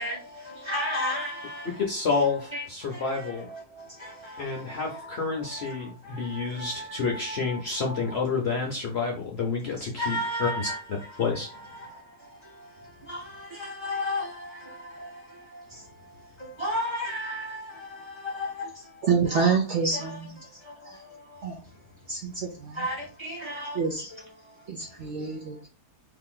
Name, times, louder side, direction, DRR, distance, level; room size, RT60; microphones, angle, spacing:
voice 1, 0.0-1.8 2.5-8.2 9.8-19.5 19.9-21.8 22.7-25.6, left 1 dB, 20° right, 1.1 m, -36 dB
voice 2, 1.8-3.5 4.4-10.7 11.2-11.6, left 4 dB, 55° left, 0.8 m, -29 dB
voice 3, 19.0-20.3 20.9-21.0 21.4-21.6 22.1-22.8 23.7-24.0 24.7-25.7, right 5 dB, 55° right, 0.9 m, -27 dB
3.1 x 2.9 x 3.7 m
omnidirectional pair, 1.7 m